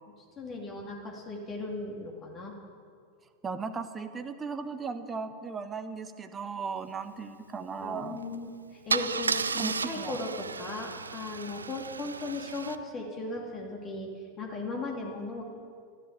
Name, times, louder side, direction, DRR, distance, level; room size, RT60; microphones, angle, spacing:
voice 1, 0.4-2.5 7.8-15.4, left 2 dB, 25° left, -1 dB, 2.5 m, -37 dB
voice 2, 3.4-8.2 9.6-10.2, right 5 dB, 20° right, 9 dB, 1.1 m, -36 dB
Car / Engine starting / Idling, 8.2-8.4 8.9-12.8, right 5 dB, 75° right, 0.5 m, -33 dB
13.5 x 12.5 x 7.9 m, 2.1 s
figure-of-eight pair, 90°, 0 cm